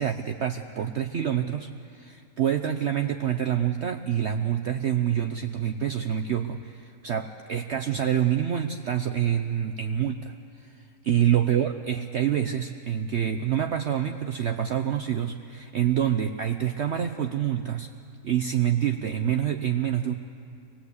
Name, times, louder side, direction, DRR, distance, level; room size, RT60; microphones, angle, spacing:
voice 1, 0.0-10.3 10.6-10.7 11.0-17.9 18.2-20.1, right 10 dB, 55° right, 6 dB, 0.9 m, -26 dB
24.5 x 20.5 x 8.2 m, 2.4 s
omnidirectional pair, 1.6 m